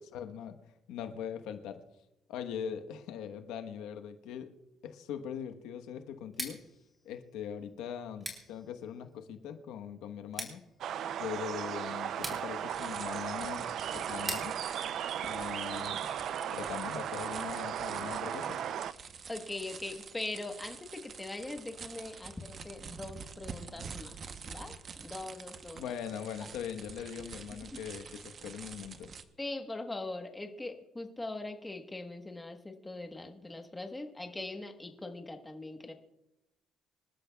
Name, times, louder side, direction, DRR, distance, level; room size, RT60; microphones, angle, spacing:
voice 1, 0.1-0.5 0.9-1.8 2.3-4.5 4.8-6.6 7.0-10.6 11.2-13.7 13.9-14.6 15.2-16.1 16.5-18.6 25.7-29.1, left 8 dB, 85° left, 7 dB, 1.1 m, -41 dB
Scissors, 6.2-16.1, right 1 dB, 15° right, 3.4 m, -47 dB
sound 1, 10.8-18.9, right 9 dB, 55° right, 0.5 m, -36 dB
sound 2, 12.7-29.2, right 5 dB, 35° right, 0.8 m, -48 dB
voice 2, 19.3-24.2 24.4-25.9 27.5-27.8 29.4-35.9, left 2 dB, 10° left, 4 dB, 1.2 m, -41 dB
26.0 x 12.5 x 2.3 m, 0.87 s
cardioid pair, 145°, 0 cm